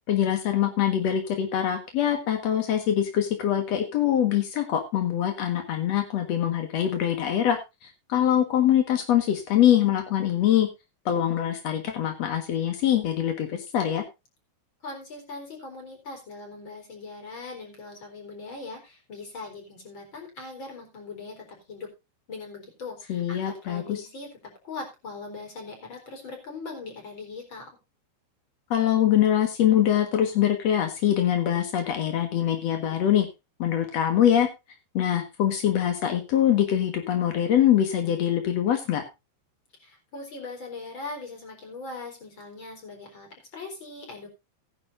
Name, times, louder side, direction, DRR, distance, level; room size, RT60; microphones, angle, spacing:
voice 1, 0.1-10.7 11.0-14.0 23.1-24.0 28.7-33.3 33.6-34.5 34.9-39.0, left 10 dB, 70° left, 5 dB, 1.6 m, -23 dB
voice 2, 14.8-21.9 22.3-27.7 39.8-44.3, left 3 dB, 25° left, 3 dB, 4.4 m, -40 dB
17.0 x 10.0 x 2.6 m, 0.25 s
omnidirectional pair, 5.4 m